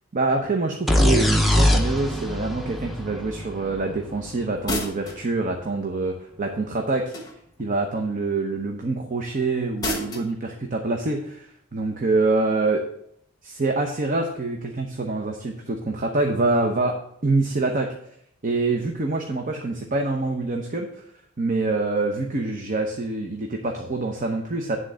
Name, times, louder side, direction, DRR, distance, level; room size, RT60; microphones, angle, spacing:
voice 1, 0.1-7.1 7.6-12.8 13.4-17.0 17.2-17.9 18.4-20.9 21.4-24.8, right 3 dB, 40° right, 3 dB, 0.7 m, -25 dB
sound 1, 0.9-4.6, left 1 dB, ahead, 0.7 m, -22 dB
sound 2, 4.7-5.3 7.1-7.6 9.8-10.3, left 1 dB, 20° left, 1.2 m, -29 dB
10.0 x 3.8 x 6.2 m, 0.71 s
head